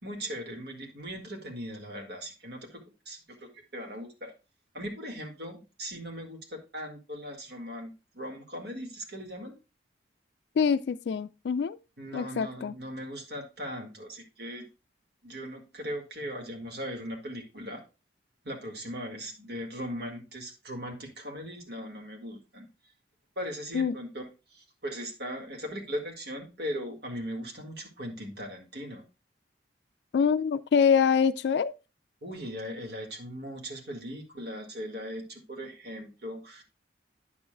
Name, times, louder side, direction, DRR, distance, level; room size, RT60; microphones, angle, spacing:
voice 1, 0.0-4.3 4.7-9.6 12.0-14.7 15.2-17.8 18.4-22.7 23.4-29.0 32.2-36.6, equal, 65° right, 1.8 m, -39 dB
voice 2, 10.6-11.8 12.1-12.7 23.7-24.0 30.1-31.7, left 6 dB, 70° left, 0.3 m, -25 dB
9.5 x 7.0 x 2.2 m
head